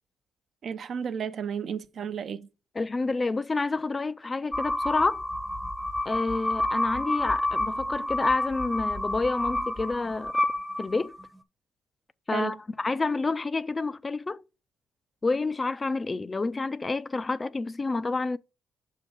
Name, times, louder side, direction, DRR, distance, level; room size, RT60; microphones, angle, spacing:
voice 1, 0.6-2.5 12.3-12.6, right 7 dB, 55° right, 0.6 m, -33 dB
voice 2, 2.8-5.2 6.1-10.3 10.8-11.1 12.3-14.4 15.2-18.4, left 3 dB, 25° left, 0.4 m, -29 dB
sound 1, 4.5-11.3, left 1 dB, ahead, 0.7 m, -29 dB
6.3 x 3.7 x 6.0 m
cardioid pair, 90°, 0 cm